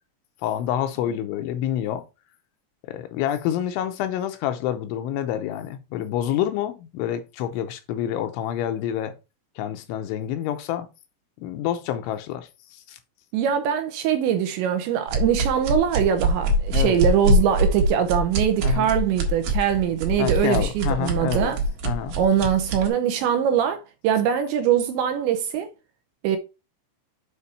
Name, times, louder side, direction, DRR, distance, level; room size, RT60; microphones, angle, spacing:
voice 1, 0.4-2.0 2.8-9.1 9.6-10.9 11.4-12.5 12.9-13.0 16.7-17.0 18.6-18.9 20.2-21.5 21.8-22.2, left 11 dB, 80° left, 2.9 m, -27 dB
voice 2, 13.3-21.6 22.2-25.7 26.2-26.4, right 9 dB, 80° right, 2.7 m, -22 dB
sound 1, 15.1-22.9, right 1 dB, 60° right, 2.8 m, -23 dB
8.3 x 5.1 x 4.2 m
omnidirectional pair, 5.9 m